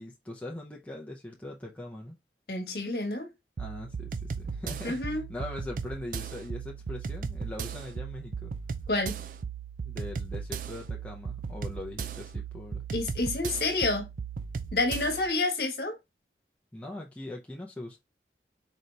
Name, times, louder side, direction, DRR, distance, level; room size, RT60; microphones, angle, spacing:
voice 1, 0.0-2.2 3.6-8.5 9.8-12.8 16.7-18.0, left 1 dB, 10° left, 0.6 m, -41 dB
voice 2, 2.5-3.3 4.8-5.2 8.9-9.2 12.9-14.1 14.7-15.9, left 2 dB, 60° left, 1.2 m, -29 dB
sound 1, 3.6-15.3, right 6 dB, 50° right, 0.4 m, -37 dB
4.0 x 2.9 x 3.2 m
head